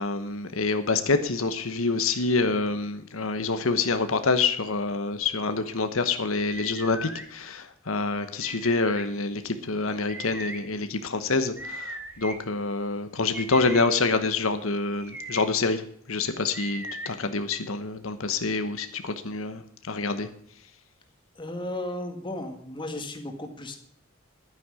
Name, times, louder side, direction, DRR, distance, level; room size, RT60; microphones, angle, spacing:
voice 1, 0.0-15.8 16.1-20.3, left 3 dB, 85° left, 9 dB, 1.1 m, -27 dB
sound 1, 6.5-7.3 8.4-9.0 10.1-10.6 11.6-12.4 13.3-13.9 14.9-15.5 16.5-17.1, right 1 dB, 10° right, 1.5 m, -38 dB
voice 2, 21.3-23.8, left 1 dB, 25° left, 5 dB, 1.7 m, -34 dB
11.0 x 9.4 x 6.3 m, 0.62 s
head